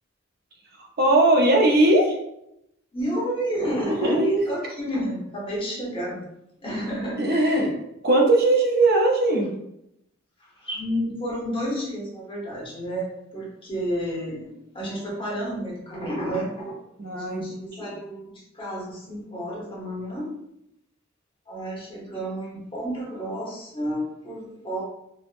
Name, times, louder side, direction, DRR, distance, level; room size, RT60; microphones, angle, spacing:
voice 1, 1.0-2.1 3.9-4.3 7.2-7.7 8.0-9.5 17.0-17.4 17.8-17.9, right 2 dB, 50° right, 1 dB, 0.5 m, -19 dB
voice 2, 2.9-6.2 6.6-7.7 10.6-16.8 17.1-20.3 21.5-24.8, right 1 dB, 25° left, -4 dB, 0.9 m, -30 dB
3.4 x 2.0 x 2.4 m, 0.81 s
head